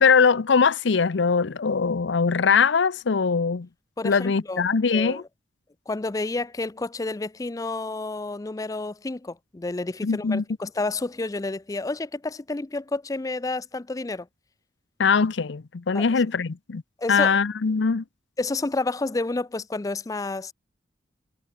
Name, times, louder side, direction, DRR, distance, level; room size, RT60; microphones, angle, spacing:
voice 1, 0.0-3.7 4.0-5.2 10.0-10.4 15.0-16.8 17.1-18.0, left 5 dB, 80° left, 0.6 m, -21 dB
voice 2, 4.0-4.7 4.9-5.3 5.9-14.3 15.9-16.1 17.0-17.4 18.4-20.5, left 2 dB, 20° left, 0.4 m, -30 dB
head